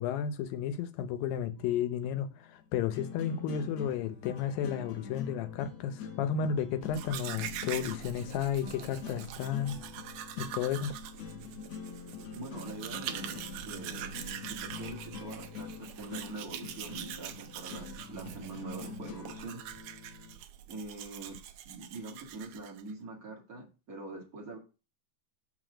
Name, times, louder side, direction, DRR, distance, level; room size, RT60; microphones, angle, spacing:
voice 1, 0.0-9.8 10.4-11.0, left 8 dB, 85° left, 2.6 m, -33 dB
sound 1, 1.6-20.4, left 6 dB, 60° left, 2.1 m, -45 dB
Domestic sounds home sounds, 6.8-22.9, right 11 dB, 75° right, 1.9 m, -44 dB
voice 2, 12.3-14.1 14.5-19.6 20.7-21.4 21.7-24.6, right 3 dB, 30° right, 1.8 m, -44 dB
5.9 x 5.7 x 4.9 m
omnidirectional pair, 4.0 m